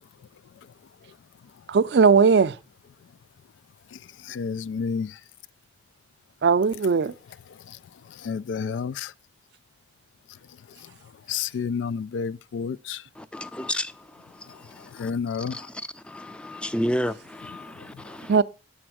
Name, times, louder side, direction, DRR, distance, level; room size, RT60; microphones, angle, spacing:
voice 1, 1.7-2.6 6.4-7.1 18.3-18.4, right 5 dB, 65° right, 0.4 m, -18 dB
voice 2, 4.3-5.1 8.2-9.1 11.3-13.0 14.9-15.6, left 6 dB, 90° left, 0.3 m, -30 dB
voice 3, 13.2-15.0 15.5-15.7 16.0-18.4, equal, 5° left, 0.3 m, -32 dB
8.5 x 4.3 x 6.1 m
head